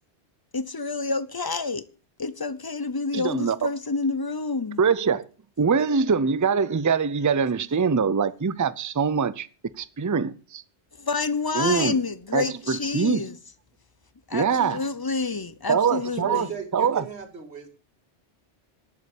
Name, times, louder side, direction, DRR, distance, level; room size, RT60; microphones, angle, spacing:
voice 1, 0.5-1.8 2.2-4.8 11.0-13.4 14.3-16.5, left 4 dB, 25° left, 0.7 m, -28 dB
voice 2, 3.1-3.6 4.8-5.2 5.6-9.5 9.8-10.6 11.5-12.0 12.3-13.2 14.3-14.8 15.7-16.5 16.7-17.0, right 6 dB, 25° right, 0.4 m, -23 dB
voice 3, 16.2-17.7, right 7 dB, 70° right, 2.7 m, -36 dB
11.5 x 7.0 x 8.4 m
omnidirectional pair, 1.1 m